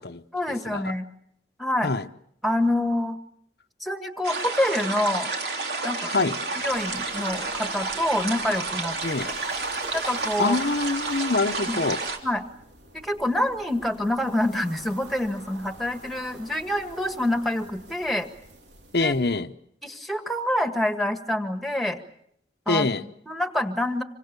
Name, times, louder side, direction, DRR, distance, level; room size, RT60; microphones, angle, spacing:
voice 1, 0.3-1.1 1.6-1.9 2.4-3.2 3.8-5.3 5.8-9.0 9.9-10.6 11.7-11.8 12.2-12.4 13.0-18.3 19.0-19.1 19.8-22.0 22.7-24.0, left 1 dB, ahead, 1.8 m, -26 dB
sound 1, 4.2-12.2, right 3 dB, 65° right, 3.3 m, -30 dB
voice 2, 6.0-6.4 9.0-9.3 10.4-12.0 18.9-19.5 22.7-23.0, left 3 dB, 60° left, 1.0 m, -24 dB
sound 2, 6.6-19.4, right 1 dB, 85° right, 4.0 m, -50 dB
27.0 x 25.0 x 6.9 m
head